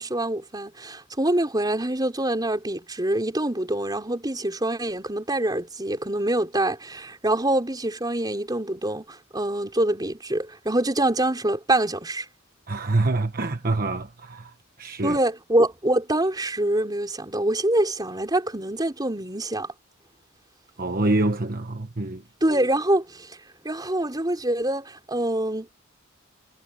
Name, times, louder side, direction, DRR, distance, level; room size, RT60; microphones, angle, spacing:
voice 1, 0.0-12.3 15.0-19.7 22.4-23.4 23.6-25.7, right 1 dB, 20° right, 4.6 m, -25 dB
voice 2, 12.7-15.2 20.8-22.2, right 2 dB, 45° right, 1.3 m, -26 dB
head